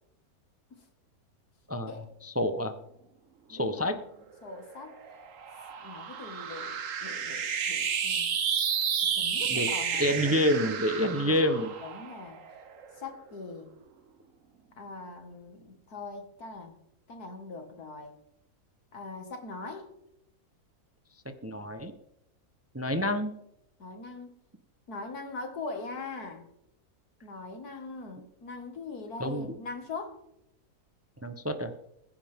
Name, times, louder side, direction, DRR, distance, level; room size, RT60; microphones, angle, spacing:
voice 1, 2.2-2.7 3.5-4.0 9.5-9.7 10.0-11.7 21.4-21.9 22.7-23.3 29.2-29.6 31.2-31.7, equal, 15° right, 8 dB, 0.7 m, -28 dB
voice 2, 3.5-4.0 4.4-4.9 5.8-8.3 9.2-10.4 11.2-11.4 11.8-12.4 13.0-13.7 14.8-16.8 17.1-18.1 18.9-19.9 23.8-24.3 24.9-26.4 27.2-30.2, left 3 dB, 80° left, 5 dB, 2.5 m, -41 dB
sound 1, 4.5-13.1, right 7 dB, 60° right, 1.4 m, -32 dB
21.0 x 9.9 x 3.6 m, 0.80 s
omnidirectional pair, 1.6 m